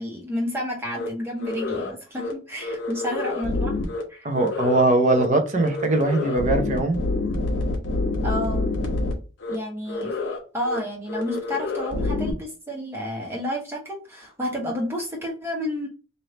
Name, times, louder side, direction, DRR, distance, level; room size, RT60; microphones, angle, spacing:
voice 1, 0.0-3.8 4.1-4.2 8.2-8.7 9.5-10.1 10.5-15.9, left 1 dB, 10° right, 1.2 m, -30 dB
sound 1, 0.9-1.1 1.4-1.9 2.2-2.3 2.6-4.0 4.3-4.8 5.1-5.2 5.5-9.1 9.4-9.6 9.9-10.4 10.6-10.8 11.1-12.3, left 2 dB, 60° left, 1.0 m, -27 dB
voice 2, 4.2-7.0, right 2 dB, 35° right, 0.7 m, -21 dB
3.3 x 2.7 x 4.1 m
head